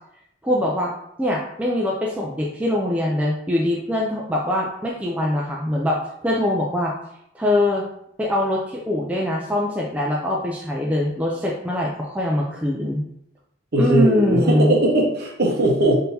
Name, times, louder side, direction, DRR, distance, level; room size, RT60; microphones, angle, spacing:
voice 1, 0.4-0.9 1.2-7.0 7.3-7.9 8.2-13.0 13.8-14.7, left 1 dB, 5° right, -2 dB, 0.3 m, -23 dB
voice 2, 13.7-15.9, right 1 dB, 50° right, -1 dB, 0.9 m, -19 dB
3.7 x 2.7 x 4.1 m, 0.75 s
head